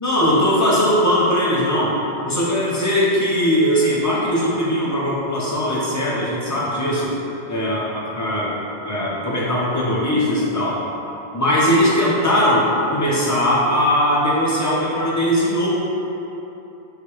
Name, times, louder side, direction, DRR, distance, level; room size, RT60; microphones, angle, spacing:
voice 1, 0.0-1.9 2.2-7.1 7.5-8.5 8.8-10.8 11.3-12.6 12.9-15.7, equal, 20° left, -7 dB, 0.5 m, -19 dB
3.3 x 2.9 x 4.5 m, 3.0 s
omnidirectional pair, 1.2 m